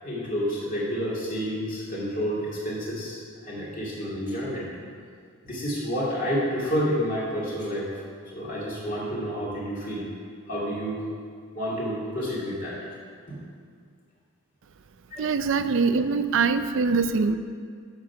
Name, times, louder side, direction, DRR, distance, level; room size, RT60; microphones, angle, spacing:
voice 1, 0.0-4.7 5.4-8.0 8.3-10.0 10.5-11.0 11.6-12.9 13.3-13.4 15.1-15.3, equal, 40° left, -6 dB, 2.3 m, -29 dB
voice 2, 15.2-17.4, right 4 dB, 60° right, 10 dB, 0.4 m, -23 dB
9.4 x 6.0 x 5.8 m, 2.1 s
head